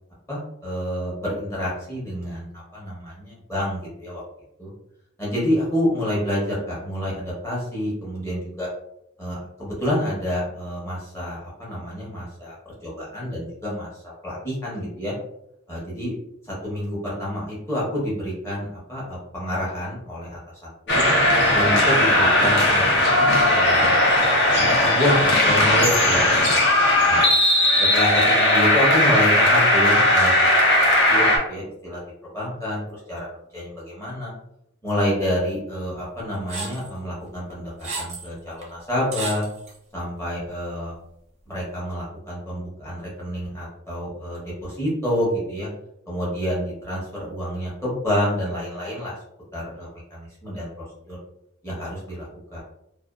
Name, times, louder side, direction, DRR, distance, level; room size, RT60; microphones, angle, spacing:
voice 1, 0.3-2.5 2.7-4.2 4.6-4.7 5.2-8.7 9.2-12.5 12.8-15.1 15.7-16.1 16.5-21.1 21.5-24.0 24.6-26.6 27.1-27.2 27.8-30.5 30.8-32.0 32.3-33.3 33.5-34.3 34.8-39.4 39.9-41.0 41.5-45.7 46.1-49.1 49.5-50.7 51.1-51.2 51.6-51.9 52.2-52.3 52.5-52.6, equal, 15° left, -6 dB, 0.9 m, -28 dB
sound 1, 20.9-31.4, left 1 dB, 55° left, 0.6 m, -17 dB
sound 2, 36.5-36.9 37.5-38.3 38.6-38.7 39.1-39.8, right 3 dB, 35° right, 0.5 m, -32 dB
2.5 x 2.2 x 2.3 m, 0.78 s
head